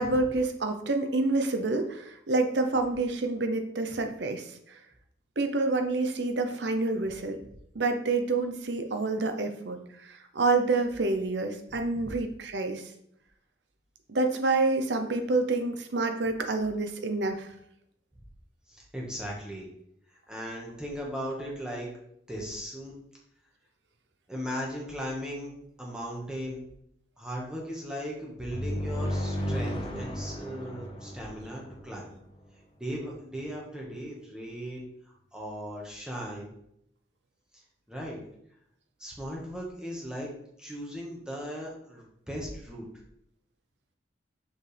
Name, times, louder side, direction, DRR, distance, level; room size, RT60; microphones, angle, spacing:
voice 1, 0.0-4.5 5.4-7.4 7.7-12.8 14.1-17.5, right 3 dB, 75° right, 6 dB, 0.8 m, -28 dB
voice 2, 18.7-19.7 20.3-21.9 22.3-22.9 24.3-25.5 25.8-26.6 27.2-32.1 32.8-36.5 37.9-38.2 39.0-40.3 40.6-42.9, equal, 5° right, -3 dB, 1.5 m, -37 dB
sound 1, 28.5-32.2, equal, 30° left, 0.8 m, -34 dB
6.1 x 5.2 x 3.4 m, 0.75 s
head